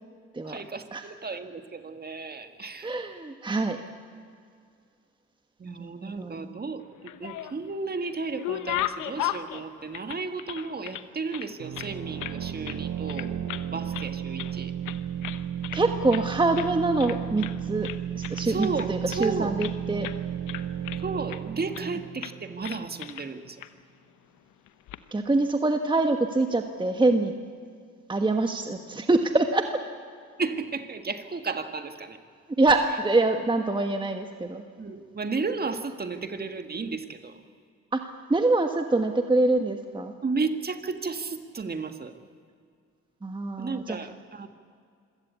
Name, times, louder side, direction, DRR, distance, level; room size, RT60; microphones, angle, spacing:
voice 1, 0.4-2.9 5.6-13.3 13.7-14.7 18.5-19.7 21.0-23.6 30.4-32.2 34.8-37.4 40.2-42.2 43.6-44.5, right 4 dB, 30° right, 8 dB, 1.8 m, -33 dB
voice 2, 2.8-3.8 5.7-6.5 15.7-17.9 18.1-20.1 25.1-27.3 28.1-29.6 32.6-34.6 37.9-38.0 38.3-40.1 43.2-44.0, right 2 dB, 15° right, 6 dB, 1.3 m, -25 dB
sound 1, 6.9-7.7 8.1-11.0 11.3-12.4 12.6-12.8 13.1-13.7 13.9-14.6 14.8-15.8 16.1-16.3 16.5-16.7 17.0-17.6 17.8-19.7 20.0-20.2 20.5-21.4 21.7-21.9 22.2-22.4 22.6-23.3 23.6-23.7 24.7-25.0, left 13 dB, 85° left, 1.0 m, -35 dB
sound 2, 11.6-23.1, right 9 dB, 55° right, 1.0 m, -34 dB
26.0 x 17.0 x 8.4 m, 2.2 s
cardioid pair, 90°, 30 cm